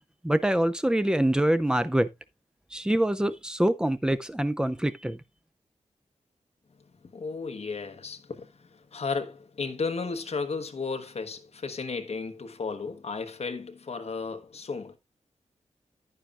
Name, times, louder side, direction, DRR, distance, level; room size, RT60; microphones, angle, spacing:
voice 1, 0.2-2.1 2.7-5.2, right 1 dB, 5° right, 0.5 m, -25 dB
voice 2, 7.0-15.0, left 4 dB, 55° left, 1.2 m, -34 dB
10.0 x 9.4 x 2.4 m
wide cardioid pair, 180°, 13 cm